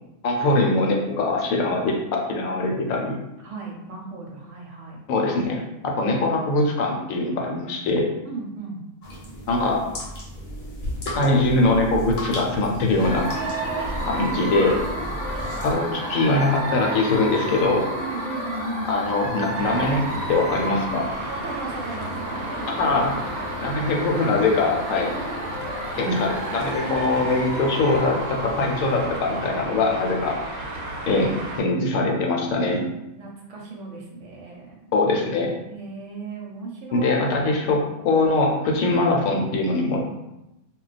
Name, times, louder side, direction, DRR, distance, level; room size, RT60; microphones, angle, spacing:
voice 1, 0.2-2.0 2.3-3.2 5.1-8.1 9.5-9.9 11.1-13.2 14.1-14.8 15.5-17.9 18.9-20.0 20.3-21.0 22.7-25.1 26.0-30.6 31.1-31.3 31.6-32.8 34.9-35.5 36.9-40.0, left 2 dB, 75° left, 1 dB, 0.9 m, -22 dB
voice 2, 3.4-5.0 8.2-8.8 13.3-14.1 15.3-15.5 17.9-19.1 20.9-22.7 25.9-26.3 29.0-29.2 29.9-30.3 31.0-31.1 33.1-34.9 35.7-37.2, right 3 dB, 65° right, -2 dB, 0.9 m, -36 dB
sound 1, 9.0-15.7, equal, 40° left, 0.7 m, -34 dB
sound 2, 13.0-31.0, right 1 dB, 20° right, 0.9 m, -32 dB
Traffic noise roadway noise, 19.5-31.6, right 2 dB, 90° right, 1.1 m, -34 dB
2.3 x 2.2 x 3.9 m, 0.92 s
omnidirectional pair, 1.5 m